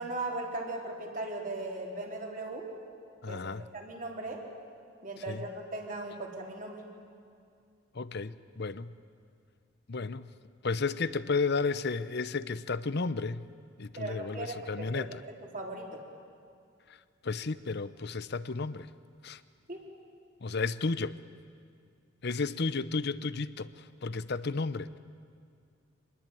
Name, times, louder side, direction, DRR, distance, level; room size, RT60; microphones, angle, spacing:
voice 1, 0.0-2.7 3.3-3.4 3.7-4.4 5.0-6.8 14.0-15.1 15.5-16.0 19.7-19.8, right 2 dB, 40° right, 0 dB, 3.9 m, -38 dB
voice 2, 3.2-3.6 5.3-5.4 7.9-8.9 9.9-10.3 10.6-13.5 13.8-15.2 17.2-18.9 19.2-19.4 20.4-21.2 22.2-24.9, left 4 dB, 55° left, 15 dB, 0.7 m, -33 dB
25.5 x 20.5 x 9.2 m, 2.3 s
head